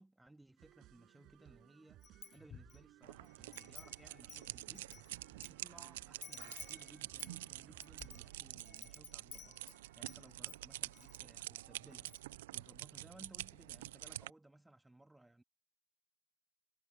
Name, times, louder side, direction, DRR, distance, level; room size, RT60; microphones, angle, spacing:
voice 1, 0.0-2.1 2.3-4.9 5.3-15.4, right 1 dB, 5° right, 2.2 m, -61 dB
sound 1, 0.6-8.3, right 15 dB, 40° right, 6.0 m, -63 dB
Wind chime, 2.0-2.8 3.2-5.5 5.8-5.9 6.2-10.2 10.5-11.2 11.6-11.7 11.9-12.4, left 9 dB, 25° left, 0.6 m, -54 dB
sound 2, 3.0-14.3, right 16 dB, 65° right, 0.6 m, -48 dB
hypercardioid pair, 115°, 0 cm